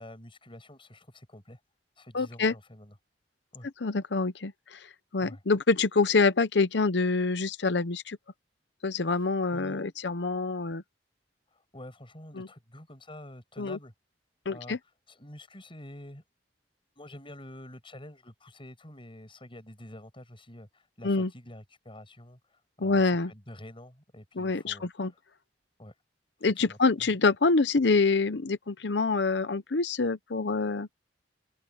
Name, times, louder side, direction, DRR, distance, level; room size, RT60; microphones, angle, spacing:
voice 1, 0.0-1.6 2.0-2.9 3.5-3.7 5.2-5.4 9.2-9.8 11.5-13.9 14.5-14.8 15.1-16.2 17.0-23.0 23.3-25.2 25.8-25.9 26.4-26.8, left 1 dB, 30° left, 7.9 m, -47 dB
voice 2, 2.1-2.5 3.8-8.2 8.8-10.8 12.4-12.5 13.6-13.8 14.5-14.8 21.0-21.3 22.8-23.3 24.4-25.1 26.4-30.9, left 3 dB, 70° left, 0.8 m, -26 dB
open air
head